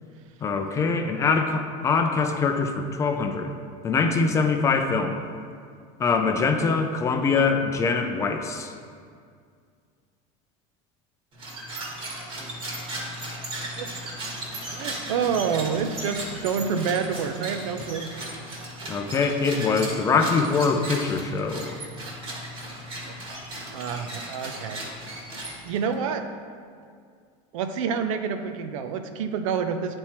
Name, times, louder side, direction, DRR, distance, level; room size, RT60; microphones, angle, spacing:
voice 1, 0.4-3.5 3.8-5.2 6.0-8.7 18.9-21.8, left 4 dB, 20° left, 5 dB, 0.4 m, -23 dB
sound 1, 11.3-25.9, right 1 dB, 30° right, 1.5 m, -36 dB
voice 2, 14.7-18.1 23.0-23.1 23.7-24.8 25.6-26.3 27.5-30.0, right 6 dB, 85° right, 7 dB, 0.7 m, -28 dB
9.3 x 4.4 x 4.4 m, 2.2 s
supercardioid pair, 160°, 17 cm